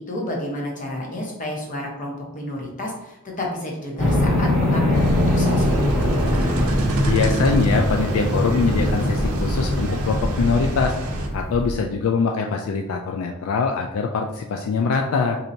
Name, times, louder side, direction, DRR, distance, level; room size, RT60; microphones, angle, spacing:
voice 1, 0.0-5.8, left 1 dB, 35° left, -1 dB, 0.9 m, -30 dB
sound 1, 4.0-11.7, left 1 dB, ahead, 0.8 m, -22 dB
sound 2, 4.9-11.3, right 2 dB, 75° right, 0.5 m, -29 dB
voice 2, 7.1-10.9 11.3-15.4, left 4 dB, 70° left, 3 dB, 0.3 m, -23 dB
4.3 x 2.7 x 2.6 m, 0.86 s
head